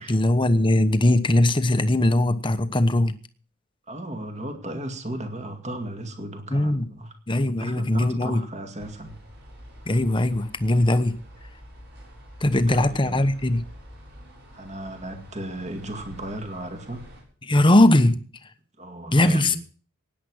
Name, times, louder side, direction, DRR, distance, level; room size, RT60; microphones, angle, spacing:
voice 1, 0.0-3.1 6.5-6.9 7.3-8.4 9.9-11.2 12.4-13.7 17.4-18.2 19.1-19.6, left 1 dB, 25° left, 1.0 m, -20 dB
voice 2, 3.9-7.1 7.5-9.2 12.7-13.3 14.5-17.1 18.8-19.6, right 1 dB, 30° right, 2.2 m, -35 dB
sound 1, 8.8-17.2, equal, 50° right, 7.2 m, -46 dB
17.0 x 10.0 x 6.4 m
head